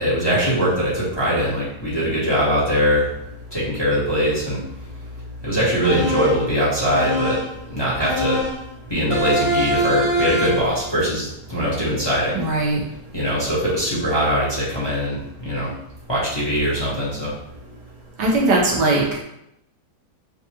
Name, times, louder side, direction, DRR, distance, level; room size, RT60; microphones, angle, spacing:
voice 1, 0.0-3.1 3.5-4.6 5.4-7.4 7.6-8.4 8.9-12.4 13.1-15.7 16.1-17.4, equal, 15° left, -8 dB, 1.2 m, -21 dB
sound 1, 5.8-6.5 6.9-7.6 8.0-8.7 9.1-10.7, equal, 20° right, 1.0 m, -23 dB
voice 2, 12.3-12.8 18.2-19.0, right 2 dB, 80° right, -2 dB, 1.6 m, -19 dB
6.3 x 2.4 x 2.9 m, 0.80 s
omnidirectional pair, 1.9 m